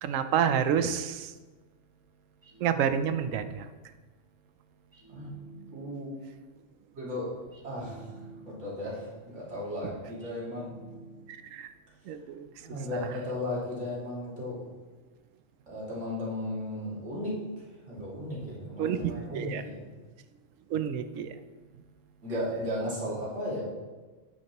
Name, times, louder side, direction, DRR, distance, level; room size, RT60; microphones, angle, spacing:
voice 1, 0.0-1.3 2.6-3.7 11.3-11.7 12.1-12.5 12.9-13.0 18.8-19.6 20.7-21.4, right 8 dB, 85° right, 10 dB, 1.0 m, -29 dB
sound 1, 2.4-3.8 4.9-6.2 7.5-8.9 10.2-11.6, right 4 dB, 15° right, 1.6 m, -51 dB
voice 2, 5.7-6.1 6.9-7.3 7.6-8.1 8.5-10.8 12.6-14.6 15.7-17.3 17.9-19.8 22.2-23.6, left 1 dB, 65° right, -6 dB, 2.8 m, -35 dB
8.6 x 8.4 x 3.0 m, 1.3 s
omnidirectional pair, 1.3 m